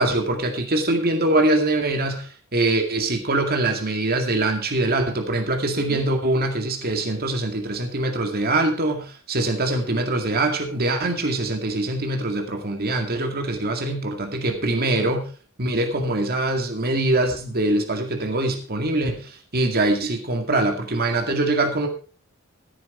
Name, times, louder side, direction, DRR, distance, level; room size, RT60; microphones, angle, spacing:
voice 1, 0.0-15.3 15.6-21.9, right 2 dB, 45° right, 4 dB, 2.1 m, -23 dB
14.5 x 9.3 x 4.3 m, 0.38 s
head